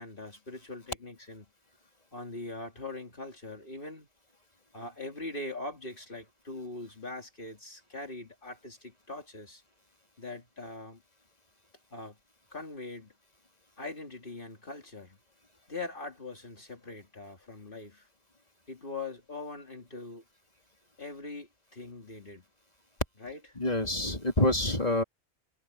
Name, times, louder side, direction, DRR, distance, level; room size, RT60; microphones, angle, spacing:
voice 1, 0.0-1.5 2.1-4.1 4.7-9.6 10.2-11.0 11.9-12.2 12.5-13.1 13.8-15.2 15.7-18.1 18.7-20.2 21.0-22.4 23.2-23.4, left 2 dB, 55° left, 2.7 m, -42 dB
voice 2, 23.6-25.0, left 1 dB, 35° left, 3.2 m, -27 dB
omnidirectional pair, 1.1 m